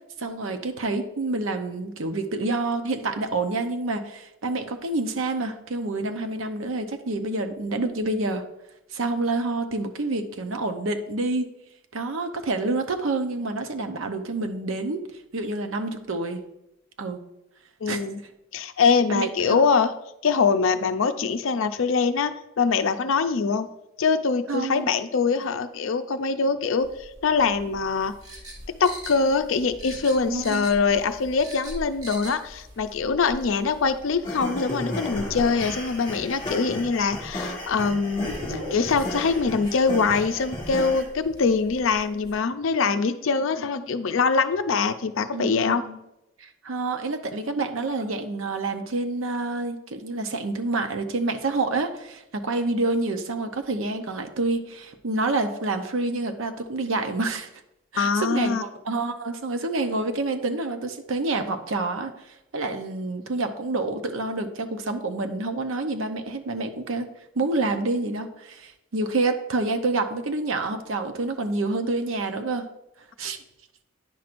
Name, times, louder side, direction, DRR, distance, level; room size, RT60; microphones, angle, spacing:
voice 1, 0.2-8.4 8.9-11.5 11.9-15.0 15.3-16.4 17.0-17.2 17.9-18.0 19.1-19.7 24.5-24.9 30.3-30.7 45.3-46.0 46.4-57.5 57.9-67.1 67.4-72.7 73.2-73.4, right 2 dB, 75° right, 7 dB, 0.7 m, -28 dB
voice 2, 17.8-18.2 18.5-19.9 20.2-23.7 24.0-28.1 28.7-45.8 58.0-58.6, left 5 dB, 70° left, 10 dB, 0.5 m, -23 dB
sound 1, 26.8-42.3, left 1 dB, 50° right, 2.5 m, -43 dB
sound 2, 28.2-29.5 29.8-30.9 31.2-32.4 32.7-32.8, right 2 dB, 20° right, 0.9 m, -40 dB
sound 3, 34.2-41.0, left 1 dB, 20° left, 1.7 m, -34 dB
9.9 x 6.0 x 2.5 m, 0.87 s
head